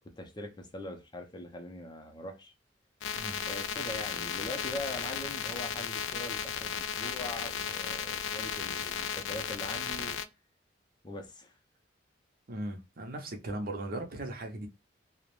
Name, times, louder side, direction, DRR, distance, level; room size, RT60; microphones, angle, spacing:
voice 1, 0.2-2.5 3.4-10.2 11.0-11.5, left 1 dB, 25° left, 0.5 m, -42 dB
sound 1, 3.0-10.2, left 7 dB, 80° left, 0.3 m, -35 dB
voice 2, 12.5-14.7, right 1 dB, 50° right, 0.6 m, -38 dB
2.3 x 2.0 x 3.0 m
head